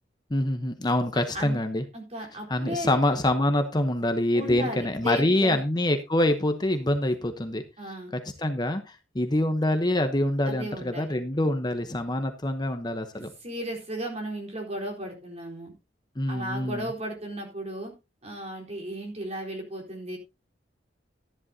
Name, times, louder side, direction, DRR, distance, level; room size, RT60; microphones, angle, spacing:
voice 1, 0.3-1.8 2.5-7.6 8.4-13.3 16.2-16.9, left 1 dB, 25° left, 7 dB, 0.9 m, -25 dB
voice 2, 1.9-3.0 4.3-5.6 7.8-8.1 10.4-11.5 13.1-15.7 16.3-17.9 18.2-20.2, right 1 dB, 35° right, 1 dB, 4.1 m, -35 dB
13.5 x 10.5 x 2.8 m, 0.25 s
head